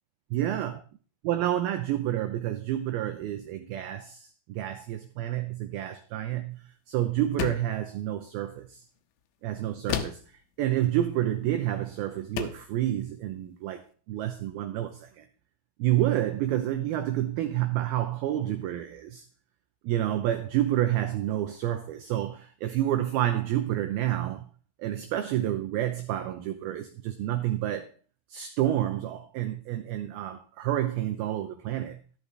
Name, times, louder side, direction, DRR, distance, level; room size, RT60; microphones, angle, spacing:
voice 1, 0.3-0.8 1.2-8.8 9.4-10.2 10.6-15.3 15.8-19.2 19.8-24.5 24.8-27.9 28.3-32.0, right 13 dB, 85° right, 2.1 m, -29 dB
sound 1, 7.4-7.8 9.9-10.3 11.7-11.8 12.4-12.7, left 10 dB, 80° left, 3.2 m, -32 dB
12.0 x 12.0 x 3.4 m
omnidirectional pair, 5.3 m